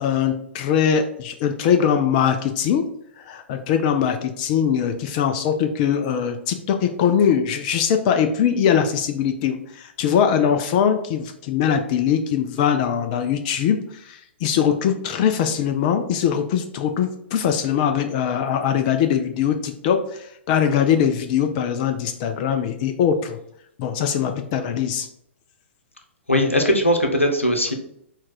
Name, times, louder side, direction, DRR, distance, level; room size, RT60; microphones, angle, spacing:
voice 1, 0.0-2.9 3.2-23.4 23.8-25.1, left 8 dB, 35° left, 6 dB, 0.4 m, -21 dB
voice 2, 26.3-27.7, equal, 90° left, 4 dB, 0.8 m, -19 dB
4.3 x 2.4 x 4.5 m, 0.74 s
figure-of-eight pair, 110°, 7 cm